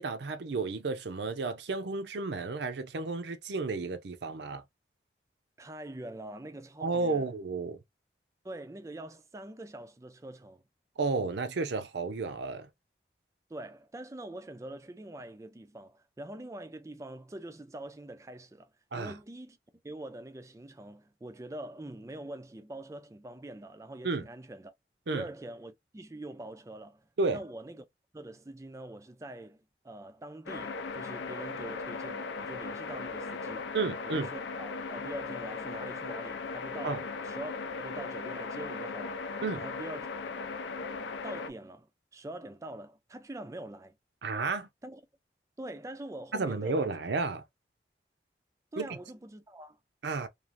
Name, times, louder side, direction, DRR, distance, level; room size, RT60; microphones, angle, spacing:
voice 1, 0.0-4.6 6.8-7.8 11.0-12.7 18.9-19.1 24.0-24.2 25.1-25.2 27.2-27.4 33.7-34.3 36.8-37.0 39.4-39.6 44.2-44.7 46.3-47.4 48.8-48.9 50.0-50.3, right 3 dB, 75° right, 0.6 m, -32 dB
voice 2, 5.6-7.3 8.4-10.6 13.5-19.6 19.8-24.7 25.1-27.8 28.1-33.7 34.0-39.2 39.5-40.2 41.2-43.9 44.8-45.0 45.6-46.9 48.7-49.8, right 1 dB, 15° right, 0.3 m, -44 dB
sound 1, 30.5-41.5, left 4 dB, 85° left, 0.5 m, -38 dB
3.1 x 2.4 x 2.4 m
head